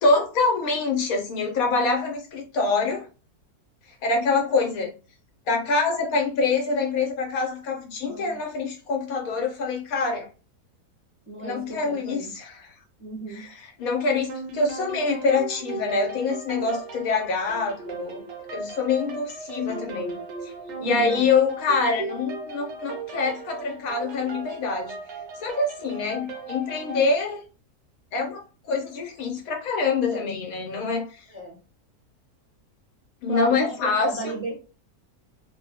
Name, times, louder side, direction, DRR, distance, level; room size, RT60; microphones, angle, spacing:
voice 1, 0.0-3.1 4.0-4.9 5.5-10.3 11.4-12.7 13.3-18.2 18.5-20.2 20.8-24.9 25.4-27.4 28.1-31.1 33.2-34.3, left 4 dB, 70° left, 2 dB, 1.1 m, -25 dB
voice 2, 8.1-8.4 11.3-12.3 13.0-13.5 20.8-21.3 30.1-30.3 31.3-31.6 33.3-33.8 34.1-34.5, right 2 dB, 15° right, -3 dB, 0.4 m, -35 dB
sound 1, 14.3-27.1, right 3 dB, 65° right, 0.8 m, -37 dB
3.0 x 2.1 x 2.7 m, 0.33 s
omnidirectional pair, 1.6 m